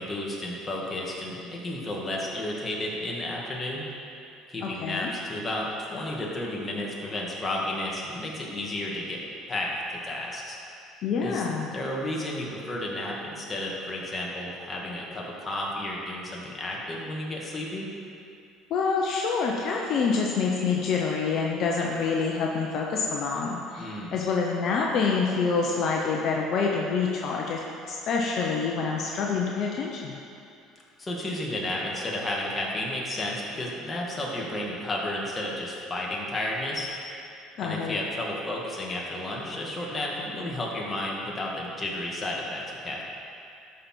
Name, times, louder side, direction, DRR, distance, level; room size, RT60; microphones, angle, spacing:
voice 1, 0.0-3.9 4.5-9.2 9.5-9.7 10.0-10.6 11.2-11.4 11.7-17.9 23.8-24.2 31.0-36.9 37.6-43.0, left 1 dB, 20° left, -3 dB, 2.0 m, -32 dB
voice 2, 4.6-5.1 11.0-11.8 18.7-27.6 27.9-30.1 37.6-38.0, left 5 dB, 55° left, -1 dB, 0.9 m, -27 dB
12.5 x 5.7 x 4.5 m, 2.6 s
supercardioid pair, 105°, 0 cm